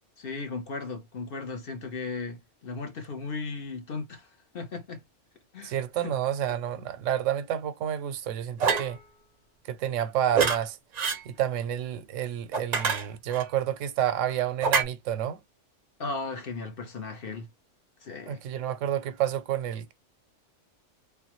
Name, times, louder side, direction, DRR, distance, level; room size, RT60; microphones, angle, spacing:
voice 1, 0.2-5.0 5.5-6.1 8.7-8.9 16.0-17.5 18.0-18.4, left 4 dB, 50° left, 1.0 m, -36 dB
voice 2, 5.6-9.0 9.7-10.8 11.2-15.4 18.3-19.9, right 10 dB, 85° right, 0.9 m, -29 dB
sound 1, 8.6-8.9 10.3-10.6 11.0-11.2 12.5-13.4 14.6-14.8, right 5 dB, 50° right, 0.5 m, -25 dB
3.4 x 2.2 x 2.9 m
omnidirectional pair, 1.3 m